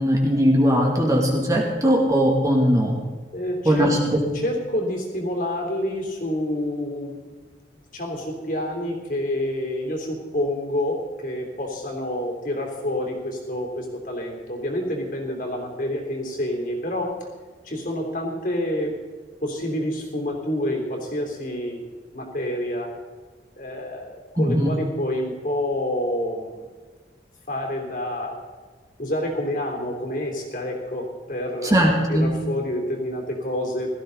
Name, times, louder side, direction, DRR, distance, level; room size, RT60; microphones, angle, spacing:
voice 1, 0.0-2.9 3.7-3.9 24.4-24.8 31.6-32.3, equal, 20° right, -1 dB, 2.5 m, -19 dB
voice 2, 3.3-3.9 4.3-7.1 7.9-17.1 17.6-18.9 19.4-21.8 22.1-22.9 23.6-26.6 27.5-28.4 29.0-33.9, left 1 dB, 50° left, 1 dB, 3.4 m, -28 dB
17.0 x 14.0 x 4.1 m, 1.4 s
head